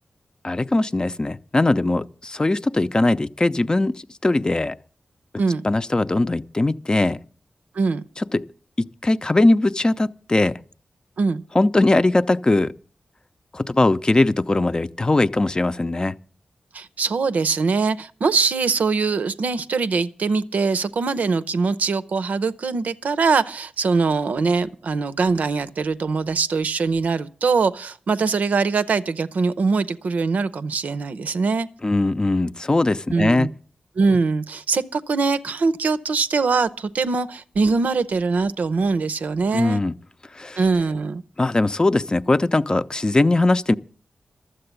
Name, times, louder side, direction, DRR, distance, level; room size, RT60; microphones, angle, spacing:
voice 1, 0.4-4.8 5.6-7.2 8.3-8.4 8.8-10.6 11.5-12.7 13.5-16.1 31.8-33.5 39.5-39.9 40.4-40.6 41.4-43.7, left 2 dB, 30° left, 0.6 m, -20 dB
voice 2, 16.7-31.7 33.1-33.5 34.0-39.8 40.6-41.2, right 4 dB, 80° right, 0.6 m, -22 dB
12.5 x 7.7 x 8.1 m
cardioid pair, 50°, 3 cm